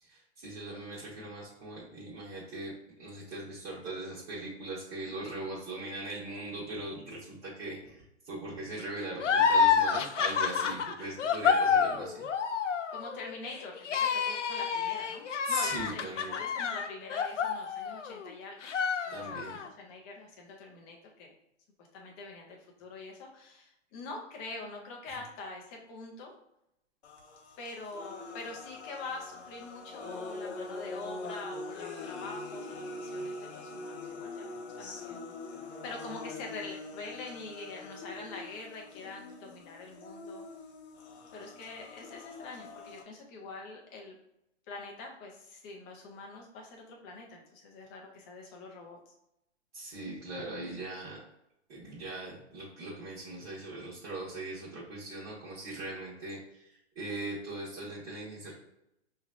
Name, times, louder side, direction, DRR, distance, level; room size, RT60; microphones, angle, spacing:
voice 1, 0.0-2.7 3.0-12.3 15.4-16.4 19.1-19.6 49.7-51.2 51.7-58.5, right 2 dB, 30° right, -8 dB, 1.4 m, -40 dB
sound 1, 9.2-18.3 18.6-19.7, left 6 dB, 85° left, 0.7 m, -28 dB
voice 2, 12.9-18.7 19.0-21.3 21.9-26.3 27.6-34.5 34.8-35.3 35.8-40.4 41.3-44.2 44.7-49.1 50.3-50.4, left 3 dB, 10° left, 0 dB, 0.4 m, -45 dB
sound 2, 27.0-43.0, left 3 dB, 65° left, 1.1 m, -43 dB
5.5 x 3.1 x 2.4 m, 0.84 s
hypercardioid pair, 145°, 36 cm